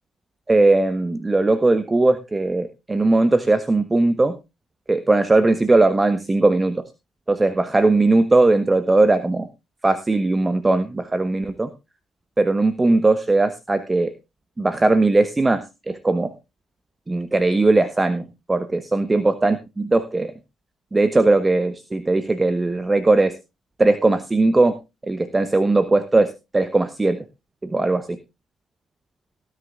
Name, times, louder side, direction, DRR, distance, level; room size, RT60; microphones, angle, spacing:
voice 1, 0.5-4.3 4.9-6.9 7.3-9.5 9.8-11.7 12.4-14.1 14.6-16.3 17.1-20.3 20.9-23.3 23.8-24.7 25.0-27.2 27.6-28.2, right 2 dB, 20° right, 12 dB, 1.1 m, -19 dB
19.0 x 10.0 x 2.4 m, 0.26 s
figure-of-eight pair, 45°, 0 cm